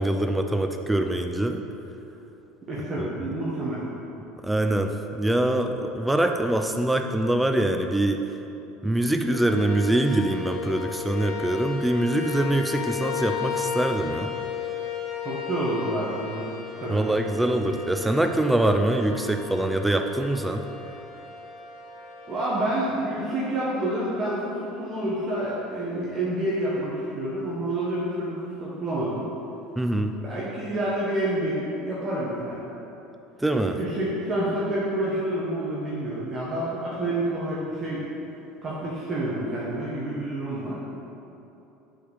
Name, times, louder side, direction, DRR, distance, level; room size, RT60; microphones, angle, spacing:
voice 1, 0.0-1.6 3.0-3.3 4.4-8.2 8.8-14.3 16.9-20.7 29.8-30.2 33.4-33.8, right 1 dB, 5° right, 5 dB, 0.3 m, -24 dB
voice 2, 2.7-3.8 15.2-16.5 16.8-17.0 22.3-29.2 30.2-32.6 33.8-38.0 38.6-40.8, right 1 dB, 25° right, -7 dB, 1.2 m, -28 dB
sound 1, 9.3-23.3, left 8 dB, 60° left, 1.4 m, -35 dB
5.8 x 5.2 x 6.5 m, 3.0 s
cardioid pair, 140°, 0 cm